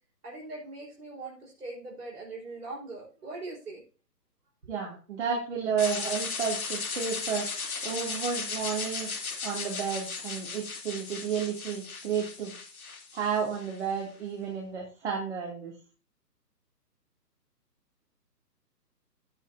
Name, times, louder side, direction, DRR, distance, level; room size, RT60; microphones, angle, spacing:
voice 1, 0.2-3.8, right 2 dB, 65° right, -2 dB, 4.7 m, -41 dB
voice 2, 4.7-7.5 7.8-9.1 9.4-12.5 13.1-15.7, right 6 dB, 45° right, -2 dB, 2.8 m, -32 dB
sound 1, 5.8-13.8, left 4 dB, 60° left, 2.2 m, -36 dB
16.0 x 5.7 x 2.6 m, 0.36 s
figure-of-eight pair, 135°, 49 cm